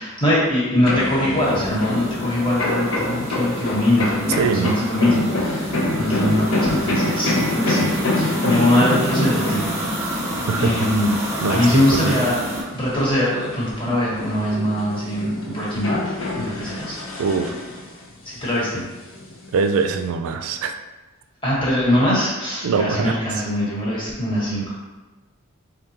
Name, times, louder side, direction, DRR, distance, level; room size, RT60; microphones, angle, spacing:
voice 1, 0.0-10.2 10.6-11.1 11.5-12.4 12.7-17.0 18.2-18.8 21.4-24.7, left 1 dB, 25° left, -7 dB, 1.2 m, -22 dB
sound 1, 0.8-13.9 14.3-18.0 18.4-20.1, left 1 dB, 65° left, 0.6 m, -26 dB
sound 2, 1.4-12.6, equal, 15° right, 0.8 m, -29 dB
voice 2, 4.4-4.8 10.5-10.9 11.4-12.2 17.2-17.5 19.5-20.7 22.6-23.2, right 5 dB, 80° right, 8 dB, 0.4 m, -22 dB
3.7 x 3.6 x 2.8 m, 1.2 s
head